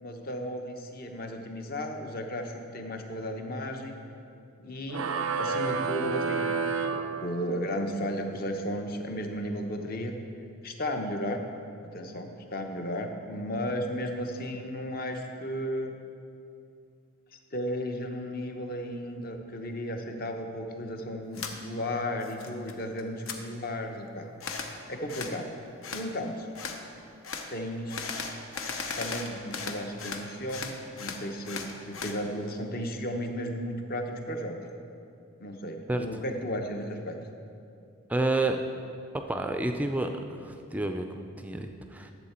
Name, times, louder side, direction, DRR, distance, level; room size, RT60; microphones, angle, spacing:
voice 1, 0.0-4.0 4.6-5.1 5.4-6.4 7.2-10.1 10.6-11.4 11.9-16.0 17.5-24.6 24.9-25.5 25.9-26.5 27.5-28.2 29.0-34.6 35.4-37.2, equal, 45° left, 4 dB, 0.8 m, -34 dB
sound 1, 4.9-7.8, right 5 dB, 80° right, 0.5 m, -30 dB
sound 2, 21.3-21.5 22.0-22.7 23.0-23.4 24.4-24.7 25.1-25.4 25.8-26.1 26.5-26.8 27.2-27.5 27.9-30.2 30.5-32.2, left 5 dB, 75° left, 0.8 m, -36 dB
voice 2, 38.1-38.6 39.1-42.1, right 2 dB, 5° right, 5 dB, 0.3 m, -30 dB
11.5 x 7.2 x 4.3 m, 2.5 s
head